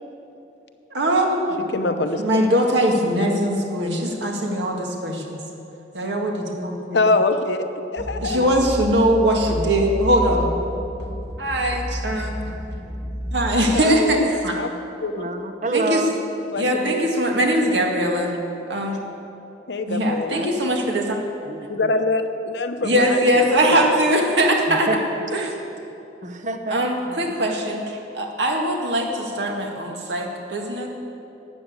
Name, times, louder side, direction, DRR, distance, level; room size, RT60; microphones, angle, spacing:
voice 1, 0.9-1.7 2.2-5.4 5.9-7.0 8.2-10.5 11.4-12.4 13.3-14.5 15.7-16.0 16.6-18.3 18.7-19.0 19.9-21.2 22.8-24.9 25.3-25.5 26.7-30.9, right 1 dB, 75° right, 1 dB, 2.0 m, -21 dB
voice 2, 1.7-2.2 6.9-8.6 13.5-14.3 14.6-14.7 15.0-15.3 16.5-17.0 19.7-20.5 21.7-23.9 25.2-25.3 27.1-27.3, left 2 dB, 70° left, 8 dB, 0.9 m, -24 dB
sound 1, 8.0-13.8, equal, 5° left, 0.7 m, -30 dB
voice 3, 15.1-16.1 21.5-21.7 24.7-25.2 26.2-26.8, right 2 dB, 45° right, 6 dB, 1.0 m, -26 dB
12.5 x 9.1 x 8.2 m, 2.8 s
head